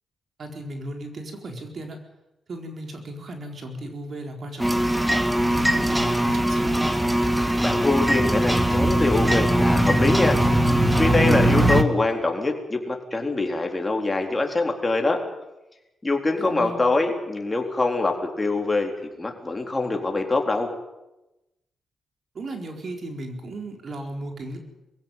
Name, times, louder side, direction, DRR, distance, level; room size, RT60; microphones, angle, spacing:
voice 1, 0.4-2.0 2.5-4.8 5.4-6.8 16.4-16.9 22.3-24.6, right 1 dB, 55° right, 4 dB, 4.4 m, -35 dB
sound 1, 4.6-11.8, right 1 dB, 5° right, 1.8 m, -20 dB
voice 2, 7.6-10.7 11.0-15.2 16.0-18.9 19.2-20.7, left 3 dB, 20° left, 3 dB, 4.1 m, -24 dB
22.0 x 16.0 x 9.2 m, 0.93 s
cardioid pair, 95°, 0 cm